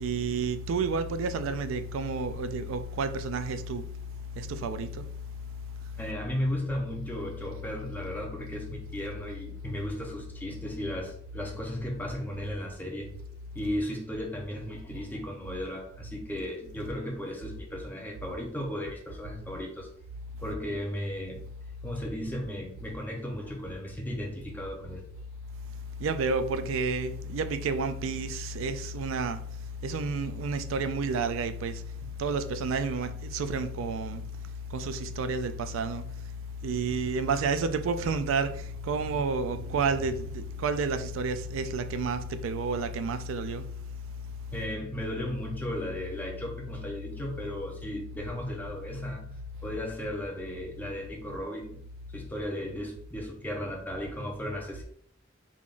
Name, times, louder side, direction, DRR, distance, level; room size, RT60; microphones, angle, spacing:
voice 1, 0.0-3.8 4.4-4.9 26.0-29.4 29.8-31.7 32.2-34.2 34.7-36.0 36.6-38.5 38.8-43.6, right 4 dB, 70° right, 0.3 m, -30 dB
voice 2, 6.0-19.9 20.4-21.4 21.8-25.0 32.0-32.1 44.5-49.2 49.6-51.8 52.1-54.8, equal, 10° left, 0.7 m, -35 dB
3.6 x 3.5 x 2.5 m
head